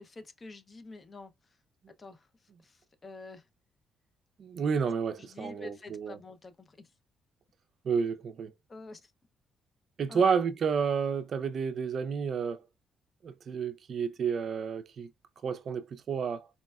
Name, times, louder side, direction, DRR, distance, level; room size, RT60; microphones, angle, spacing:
voice 1, 0.0-1.3 2.0-2.3 2.6-3.4 5.2-6.9 8.7-9.1 10.1-10.3, left 3 dB, 35° left, 0.5 m, -47 dB
voice 2, 4.4-6.2 7.8-8.5 10.0-12.6 13.2-15.1 15.4-16.5, right 6 dB, 55° right, 0.4 m, -30 dB
4.1 x 2.1 x 2.2 m
cardioid pair, 90°, 0 cm